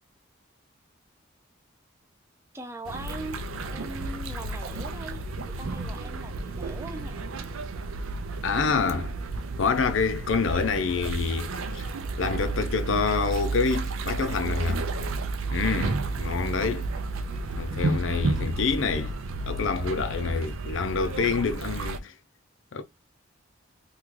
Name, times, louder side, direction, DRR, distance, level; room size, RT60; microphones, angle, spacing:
voice 1, 2.5-7.2, right 1 dB, 15° right, 0.4 m, -41 dB
sound 1, 2.8-22.0, right 3 dB, 80° right, 0.5 m, -32 dB
voice 2, 8.4-9.1 9.6-11.9 12.2-14.9 15.5-16.9 17.6-19.1 19.5-22.1 22.7-22.8, left 5 dB, 70° left, 0.5 m, -27 dB
3.7 x 2.3 x 3.1 m
head